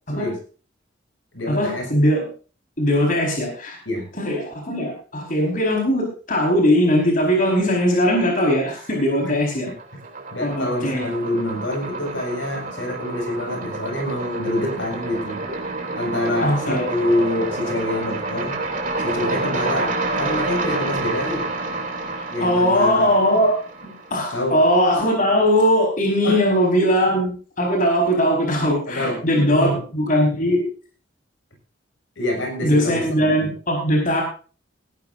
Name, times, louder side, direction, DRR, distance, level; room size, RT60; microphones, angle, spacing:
voice 1, 0.1-0.4 1.3-1.9 3.9-4.1 9.2-9.3 10.3-15.4 16.0-18.6 19.0-21.5 22.3-23.1 24.3-24.6 26.2-26.5 28.9-29.8 32.2-33.5, left 1 dB, 80° left, 2 dB, 6.3 m, -26 dB
voice 2, 1.5-2.2 2.8-3.8 4.2-9.7 10.4-11.0 16.4-16.9 22.1-23.5 24.1-27.3 27.6-30.6 32.6-34.2, equal, 45° left, 1 dB, 4.8 m, -20 dB
sound 1, 8.3-9.0 9.3-24.5, right 2 dB, 45° right, 3.2 m, -29 dB
18.0 x 14.5 x 2.7 m, 0.37 s
head